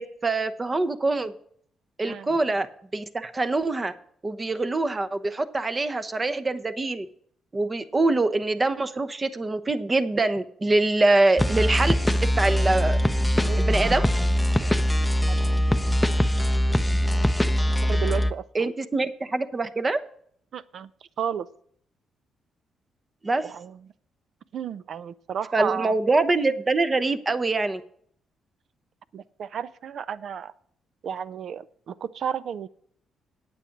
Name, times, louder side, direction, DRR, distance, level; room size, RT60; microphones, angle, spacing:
voice 1, 0.0-1.3 2.0-2.7 2.9-3.9 4.2-7.1 7.5-13.0 13.6-14.0 18.5-20.0 23.2-23.5 25.5-27.8, right 2 dB, 25° right, 11 dB, 0.9 m, -24 dB
sound 1, 11.4-18.3, equal, 5° left, 0.6 m, -22 dB
voice 2, 17.6-18.4 20.5-20.9 21.2-21.5 23.4-23.8 24.5-25.9 29.1-30.5 31.0-32.7, right 8 dB, 65° right, 17 dB, 0.5 m, -32 dB
9.0 x 8.7 x 5.9 m, 0.63 s
cardioid pair, 85°, 0 cm